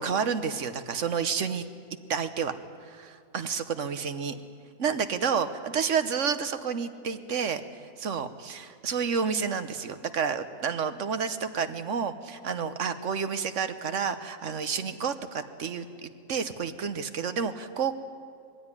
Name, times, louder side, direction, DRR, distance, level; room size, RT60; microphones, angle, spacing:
voice 1, 0.0-1.7 2.1-2.5 2.9-4.3 4.8-7.6 8.0-17.9, right 6 dB, 65° right, 10 dB, 1.3 m, -30 dB
22.0 x 16.0 x 9.8 m, 2.3 s
omnidirectional pair, 1.4 m